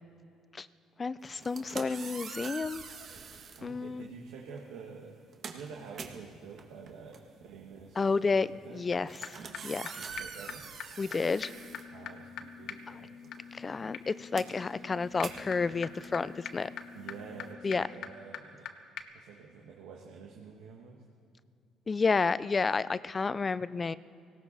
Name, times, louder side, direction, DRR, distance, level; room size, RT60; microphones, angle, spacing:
voice 1, 1.0-2.8 3.6-4.1 8.0-9.4 9.6-10.1 11.0-11.5 13.5-16.7 17.6-17.9 21.9-23.9, left 4 dB, 35° left, 17 dB, 0.5 m, -30 dB
sound 1, 1.3-3.7 4.6-4.8 5.1-12.6 12.9-17.5, right 6 dB, 55° right, 1.7 m, -45 dB
voice 2, 3.5-5.1 5.5-8.8 10.0-10.7 11.9-13.8 16.9-18.7 19.1-21.0, right 5 dB, 80° right, -1 dB, 1.6 m, -48 dB
sound 2, 8.9-9.0 9.2-9.3 9.5-9.6 9.9-10.0 10.2-10.3 10.5-10.6 10.8-10.9 11.1-11.2 11.4-18.7 19.0-19.1, left 8 dB, 70° left, 1.1 m, -44 dB
19.0 x 17.5 x 4.2 m, 2.5 s
supercardioid pair, 70°, 0 cm